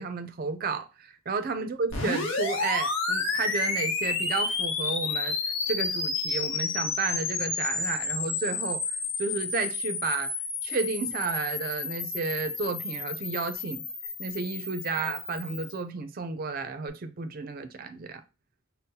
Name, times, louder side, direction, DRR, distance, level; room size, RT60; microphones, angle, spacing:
voice 1, 0.0-5.4 5.7-8.8 9.2-10.3 10.6-13.8 14.2-18.2, right 4 dB, 45° right, 0.4 m, -32 dB
sound 1, 1.9-15.8, left 4 dB, 75° left, 0.8 m, -31 dB
5.3 x 2.0 x 2.7 m
head